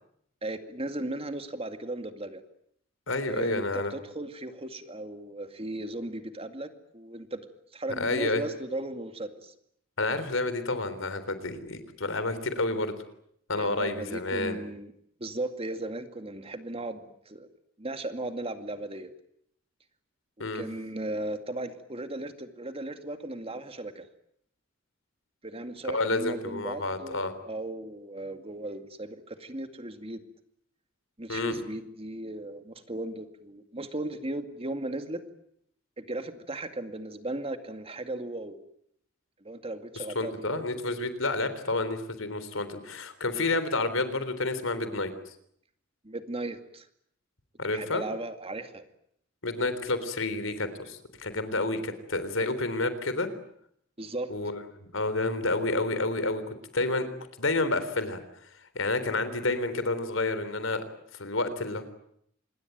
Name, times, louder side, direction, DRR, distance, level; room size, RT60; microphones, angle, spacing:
voice 1, 0.4-2.4 3.3-7.4 7.7-9.5 13.5-14.9 15.2-17.5 17.8-19.1 20.4-24.1 25.4-30.2 31.2-35.2 36.0-38.6 39.4-40.6 46.0-46.9 47.6-48.9 52.4-52.5 54.0-54.3, right 2 dB, 30° right, 8 dB, 2.2 m, -36 dB
voice 2, 3.1-3.9 8.0-8.4 10.0-12.9 13.5-14.6 20.4-20.6 25.9-27.3 31.3-31.6 40.0-45.1 47.6-48.0 49.4-53.3 54.3-57.1 57.4-58.2 58.8-60.8 61.1-61.8, left 2 dB, 85° left, 12 dB, 3.7 m, -29 dB
26.5 x 21.0 x 9.2 m, 0.71 s
head